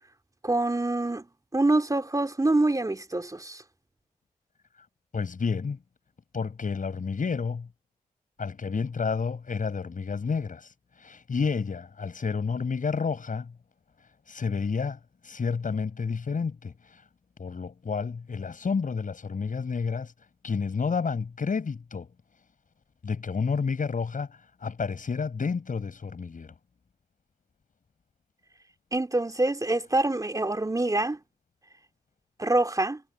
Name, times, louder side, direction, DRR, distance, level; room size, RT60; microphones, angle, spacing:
voice 1, 0.4-1.3 1.5-3.6 28.9-31.2 32.4-33.0, right 2 dB, 20° right, 3.0 m, -25 dB
voice 2, 5.1-5.8 6.3-7.7 8.4-13.5 14.3-17.0 17.4-20.1 20.4-22.1 23.0-26.5, left 5 dB, 55° left, 7.9 m, -30 dB
supercardioid pair, 45°, 16 cm